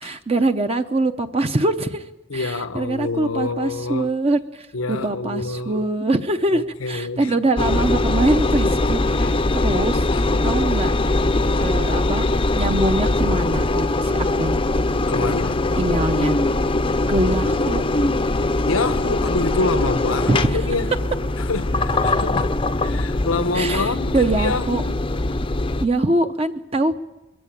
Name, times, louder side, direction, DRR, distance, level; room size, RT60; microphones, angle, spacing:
voice 1, 0.0-2.0 2.3-10.0 10.4-10.9 11.6-12.3 12.6-14.6 15.8-16.4 17.1-17.8 20.3-20.7 23.5-24.8 25.8-27.0, right 2 dB, 30° right, 0.7 m, -23 dB
voice 2, 2.3-4.1 4.7-5.9 6.5-7.3 10.1-10.2 15.1-15.6 18.6-20.9 21.4-25.0, left 3 dB, 90° left, 1.1 m, -27 dB
Engine, 7.6-25.9, left 2 dB, 25° left, 0.6 m, -21 dB
22.0 x 15.0 x 8.9 m
head